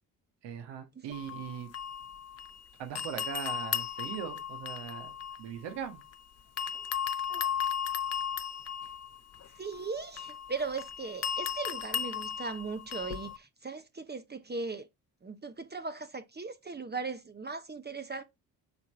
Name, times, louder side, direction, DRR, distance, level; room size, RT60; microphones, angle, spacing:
voice 1, 0.4-1.7 2.8-6.0, right 8 dB, 70° right, 1.6 m, -40 dB
sound 1, 1.1-2.6 3.0-6.2 6.6-13.4, left 9 dB, 35° left, 0.7 m, -36 dB
voice 2, 9.5-14.9 15.2-18.2, right 4 dB, 25° right, 0.9 m, -38 dB
7.0 x 3.8 x 4.1 m
hypercardioid pair, 45°, 43 cm